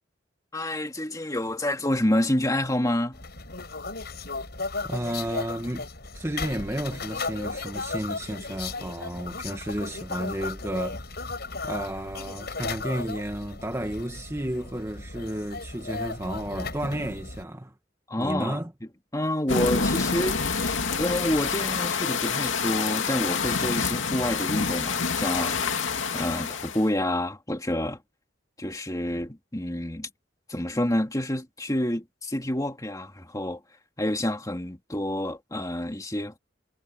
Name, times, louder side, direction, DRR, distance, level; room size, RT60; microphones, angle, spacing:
voice 1, 0.5-3.2 18.1-18.6 19.1-25.6 26.1-28.0 28.6-30.1 30.5-33.6 34.0-36.4, left 1 dB, 20° left, 2.4 m, -28 dB
sound 1, 3.1-17.4, left 3 dB, 55° left, 6.8 m, -35 dB
voice 2, 4.9-5.9 6.1-11.0 11.6-17.7 18.2-18.7, right 1 dB, 15° right, 1.3 m, -32 dB
sound 2, 19.5-26.9, left 5 dB, 90° left, 2.6 m, -27 dB
head